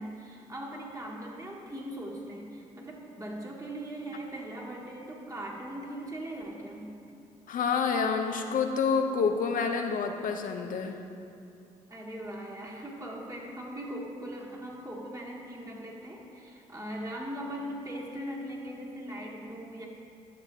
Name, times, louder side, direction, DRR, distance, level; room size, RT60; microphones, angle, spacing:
voice 1, 0.0-6.9 11.9-19.9, right 1 dB, 25° right, -3 dB, 1.8 m, -40 dB
voice 2, 7.5-11.0, left 5 dB, 65° left, 4 dB, 0.6 m, -28 dB
11.5 x 6.6 x 2.8 m, 2.6 s
supercardioid pair, 55°, 15 cm